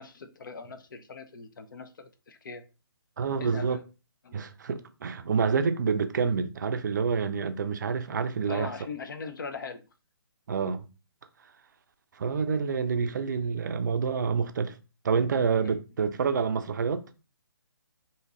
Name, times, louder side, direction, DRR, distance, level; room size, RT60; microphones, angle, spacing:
voice 1, 0.0-2.6 3.4-3.8 4.2-4.3 8.5-9.9 15.6-15.8, left 5 dB, 55° left, 0.5 m, -40 dB
voice 2, 3.2-3.8 4.3-8.7 10.5-10.9 12.2-14.7 15.0-17.0, right 5 dB, 50° right, 0.4 m, -27 dB
3.5 x 2.7 x 3.0 m
figure-of-eight pair, 140°, 13 cm